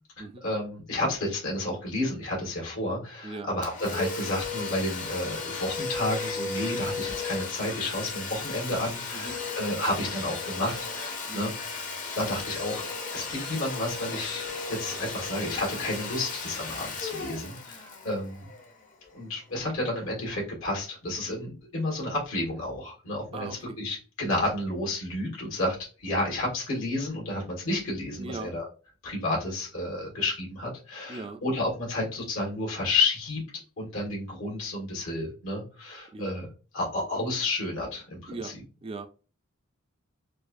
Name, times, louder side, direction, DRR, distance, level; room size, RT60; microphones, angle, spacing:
voice 1, 0.2-11.9 12.1-12.8 13.1-18.5 19.1-28.7 29.0-33.4 33.8-36.5 36.7-38.5, left 2 dB, 80° left, 1.6 m, -31 dB
Domestic sounds home sounds, 3.6-19.1, left 4 dB, 40° left, 0.7 m, -35 dB
voice 2, 23.3-23.8 28.2-28.5 31.1-31.4 36.1-36.3 38.3-38.6 38.8-39.1, right 3 dB, 25° right, 0.3 m, -39 dB
4.4 x 2.3 x 2.6 m
head